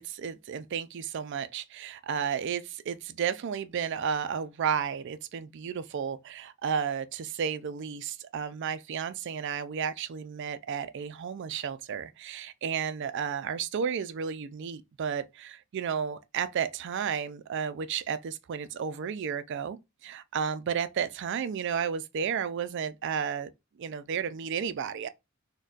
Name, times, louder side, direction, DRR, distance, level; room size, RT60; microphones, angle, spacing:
voice 1, 0.0-23.5 23.8-25.1, right 7 dB, 55° right, 0.4 m, -32 dB
3.9 x 2.2 x 2.3 m
head